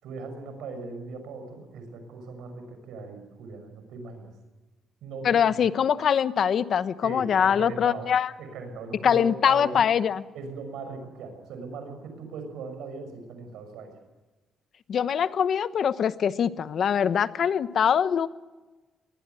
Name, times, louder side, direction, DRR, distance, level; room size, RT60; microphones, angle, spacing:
voice 1, 0.0-4.3 5.0-5.5 7.0-8.1 8.4-9.8 10.3-14.0, right 4 dB, 85° right, 7 dB, 6.2 m, -39 dB
voice 2, 5.2-8.3 9.0-10.2 14.9-18.3, left 8 dB, 60° left, 13 dB, 1.0 m, -23 dB
21.5 x 20.5 x 9.3 m, 1.2 s
cardioid pair, 90°, 0 cm